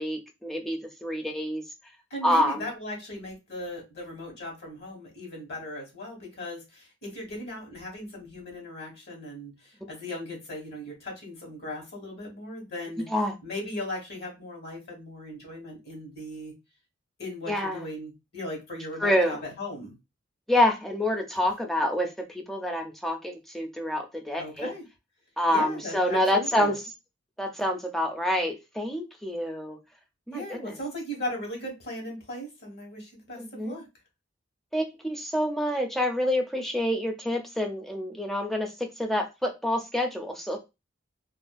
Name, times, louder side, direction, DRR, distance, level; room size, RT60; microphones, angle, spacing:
voice 1, 0.0-1.6 2.2-2.6 13.1-13.3 17.5-17.9 19.0-19.4 20.5-24.7 25.4-26.8 27.4-29.8 30.3-30.8 33.4-33.8 34.7-40.6, left 1 dB, ahead, 3 dB, 0.4 m, -27 dB
voice 2, 2.1-13.1 13.4-16.5 17.2-19.9 24.4-24.8 25.5-26.7 30.3-33.8, left 1 dB, 60° left, 1 dB, 1.2 m, -38 dB
2.5 x 2.3 x 2.3 m, 0.24 s
head